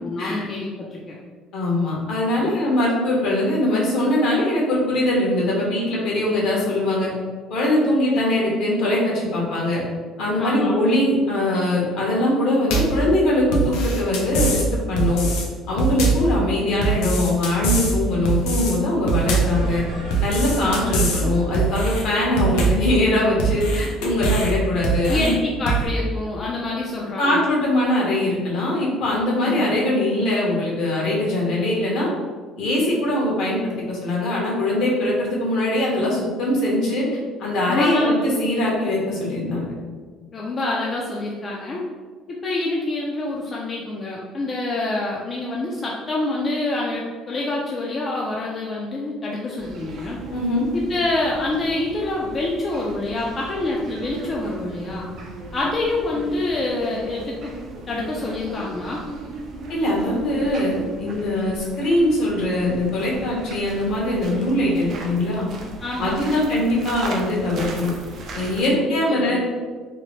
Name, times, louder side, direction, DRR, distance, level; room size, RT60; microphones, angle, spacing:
voice 1, 0.0-1.2 10.4-10.8 25.1-27.4 29.4-29.6 37.7-38.3 40.3-41.8 42.3-50.2 50.7-55.1 55.5-57.5 57.9-59.0 65.8-66.4 68.7-69.4, left 2 dB, 30° left, -3 dB, 0.3 m, -26 dB
voice 2, 1.5-7.1 7.5-9.8 10.2-15.3 15.7-19.8 20.2-25.4 27.2-32.1 32.6-37.1 37.4-39.7 50.3-50.6 59.7-65.5 66.0-67.9 68.3-69.4, left 1 dB, 65° left, -4 dB, 0.9 m, -22 dB
sound 1, 12.7-13.0 13.5-14.7 15.0-15.5 15.8-16.3 16.8-18.0 18.3-18.8 19.1-19.6 20.1-21.2 21.5-22.0 22.4-22.9 23.4-24.5 24.8-25.3 25.7-25.9, right 3 dB, 90° left, 0.5 m, -22 dB
sound 2, 19.5-24.3, left 1 dB, 65° right, 0.8 m, -35 dB
sound 3, 49.6-68.7, right 2 dB, 50° right, 0.4 m, -37 dB
2.7 x 2.0 x 3.1 m, 1.5 s
cardioid pair, 125°, 0 cm